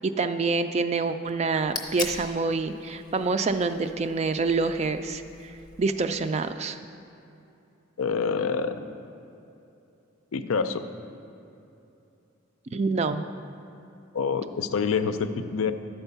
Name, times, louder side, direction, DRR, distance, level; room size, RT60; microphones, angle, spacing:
voice 1, 0.0-6.8 12.7-13.2, right 4 dB, 30° right, 9 dB, 0.3 m, -27 dB
sound 1, 1.3-6.5, left 4 dB, 20° left, 0.7 m, -41 dB
voice 2, 8.0-8.8 10.3-10.8 14.1-15.7, left 5 dB, 80° left, 9 dB, 0.5 m, -26 dB
11.5 x 4.5 x 6.8 m, 2.7 s
head